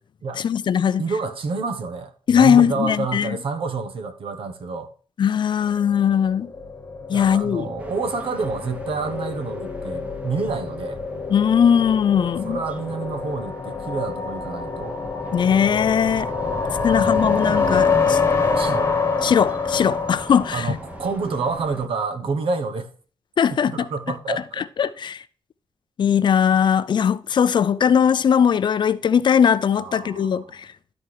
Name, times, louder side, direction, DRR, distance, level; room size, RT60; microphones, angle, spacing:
voice 1, 0.4-1.0 2.3-3.4 5.2-6.5 7.1-7.7 11.3-12.6 15.3-16.3 16.8-18.2 19.2-20.8 23.4-23.9 24.8-25.2 26.0-30.7, left 8 dB, 55° left, 0.5 m, -19 dB
voice 2, 1.0-4.9 7.1-11.0 12.4-15.0 16.9-17.5 18.5-18.9 20.5-22.9 23.5-24.7 29.7-30.6, right 4 dB, 65° right, 1.1 m, -28 dB
sound 1, 5.9-21.2, left 5 dB, 25° left, 1.3 m, -26 dB
sound 2, 7.8-21.9, right 1 dB, 15° right, 0.9 m, -38 dB
12.0 x 4.4 x 4.7 m
wide cardioid pair, 145°, 10 cm